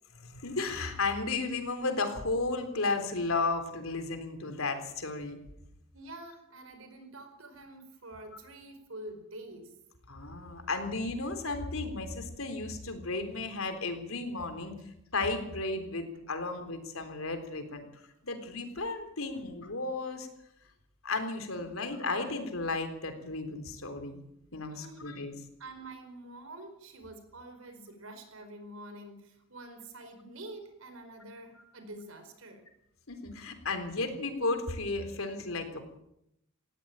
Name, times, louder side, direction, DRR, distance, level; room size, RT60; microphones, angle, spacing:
voice 1, 0.2-5.4 10.1-14.7 15.1-17.9 18.2-20.3 21.0-24.2 24.5-25.3 33.1-36.0, left 3 dB, 85° left, 7 dB, 3.7 m, -34 dB
voice 2, 5.9-9.7 16.1-16.2 17.7-18.0 21.5-21.9 24.7-25.1 25.6-32.7, right 2 dB, 85° right, 7 dB, 4.8 m, -47 dB
19.0 x 16.5 x 8.9 m, 0.80 s
head